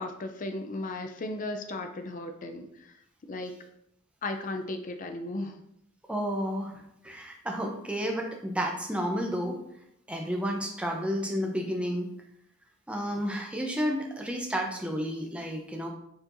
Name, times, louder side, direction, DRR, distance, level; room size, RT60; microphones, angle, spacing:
voice 1, 0.0-2.9 3.3-3.5 4.2-5.6, left 2 dB, 40° left, 6 dB, 0.4 m, -35 dB
voice 2, 6.1-6.7 7.0-9.6 10.1-12.1 12.9-15.9, equal, 5° right, 1 dB, 0.6 m, -31 dB
4.6 x 4.4 x 2.5 m, 0.77 s
head